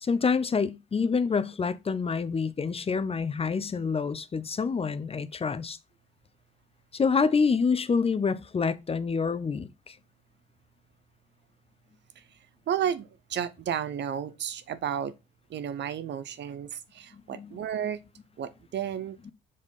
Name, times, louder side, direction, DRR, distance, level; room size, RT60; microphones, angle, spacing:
voice 1, 0.0-5.8 6.9-10.0 17.3-17.5, left 5 dB, 30° left, 0.6 m, -27 dB
voice 2, 12.7-15.1 15.5-18.0 18.4-19.2, right 9 dB, 60° right, 0.7 m, -32 dB
5.1 x 4.1 x 5.3 m
cardioid pair, 90°, 20 cm